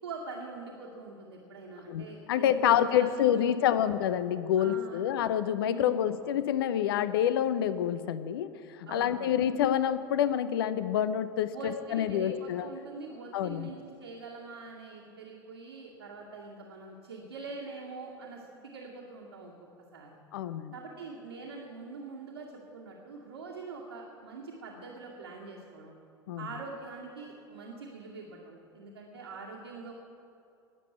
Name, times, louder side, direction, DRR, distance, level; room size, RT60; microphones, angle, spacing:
voice 1, 0.0-3.8 4.6-5.0 5.6-6.2 8.9-9.4 11.5-19.5 19.9-20.2 20.7-25.9 26.4-29.9, right 4 dB, 80° right, -4 dB, 2.3 m, -44 dB
voice 2, 1.9-12.7 13.3-13.7 20.3-20.7 26.3-26.5, left 10 dB, 65° left, 13 dB, 0.7 m, -27 dB
20.5 x 7.8 x 8.1 m, 2.6 s
figure-of-eight pair, 75°, 13 cm